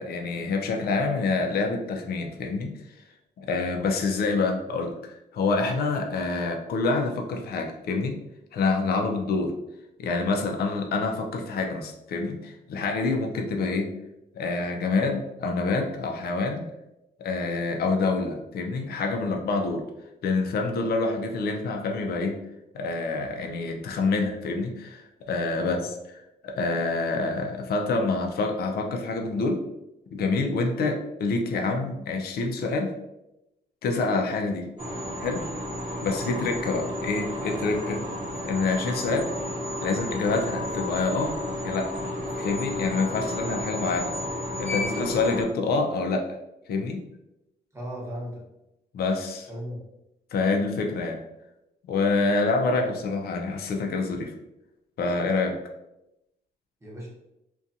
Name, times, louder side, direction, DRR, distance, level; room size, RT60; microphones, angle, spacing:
voice 1, 0.0-3.0 3.4-8.2 8.5-9.5 10.0-13.9 14.3-16.7 17.2-19.8 20.2-22.4 22.7-29.6 30.1-32.9 33.8-34.7 35.2-35.5 36.0-38.0 38.4-39.3 39.8-41.4 41.6-41.9 42.4-44.1 44.6-46.2 46.7-47.0 48.9-49.5 50.3-51.2 51.8-54.3 55.0-55.6, left 3 dB, 65° left, 3 dB, 0.4 m, -27 dB
sound 1, 34.8-45.4, left 1 dB, 40° right, 0.9 m, -32 dB
voice 2, 47.7-48.4 49.5-49.8 56.8-57.1, equal, 15° right, -5 dB, 1.0 m, -36 dB
2.4 x 2.3 x 2.6 m, 0.89 s
cardioid pair, 95°, 18 cm